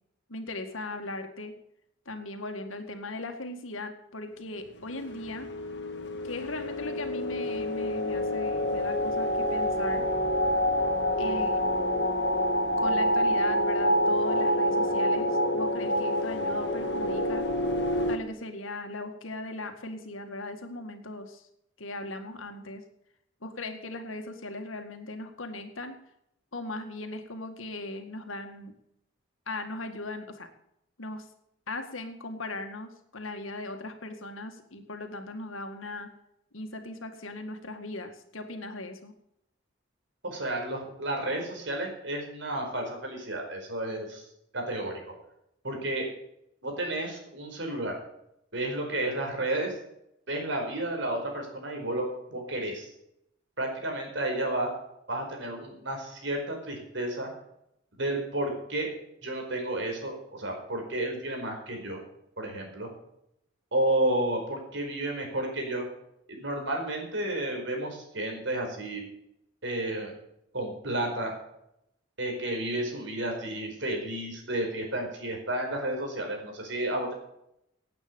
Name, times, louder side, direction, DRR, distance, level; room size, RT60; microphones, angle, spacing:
voice 1, 0.3-1.5 2.1-5.5 6.2-10.1 11.2-11.6 12.8-17.5 18.1-21.5 21.8-22.8 23.4-26.0 26.5-28.7 29.5-30.5 31.0-31.3 31.7-36.1 36.5-39.1, left 2 dB, 90° left, 6 dB, 2.0 m, -38 dB
sound 1, 4.8-18.2, equal, 55° left, 1.8 m, -27 dB
voice 2, 40.2-44.2 44.5-44.9 45.6-46.1 46.6-48.0 48.5-49.7 50.3-52.0 52.3-52.9 53.6-54.7 55.1-57.3 58.0-58.9 59.2-62.0 62.4-62.9 63.7-65.8 66.3-69.0 69.6-70.1 70.5-71.4 72.2-77.1, right 1 dB, 65° right, 2 dB, 4.8 m, -31 dB
17.0 x 8.9 x 5.3 m, 0.78 s
head